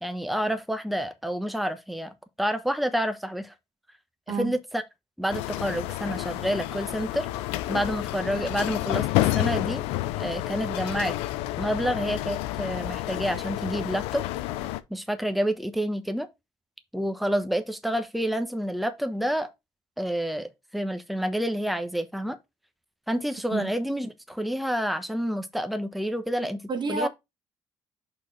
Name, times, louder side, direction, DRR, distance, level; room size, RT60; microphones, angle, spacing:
voice 1, 0.0-3.5 4.3-4.8 5.2-7.3 7.7-9.8 10.2-11.1 11.6-14.2 14.9-16.3 16.9-19.5 20.0-22.4 23.1-26.6 26.9-27.1, equal, ahead, 1.0 m, -28 dB
voice 2, 4.3-4.6 23.5-23.7 26.7-27.1, right 3 dB, 50° right, 1.1 m, -29 dB
sound 1, 5.3-14.8, left 16 dB, 85° left, 0.5 m, -30 dB
5.4 x 4.4 x 4.8 m
supercardioid pair, 60°, 10 cm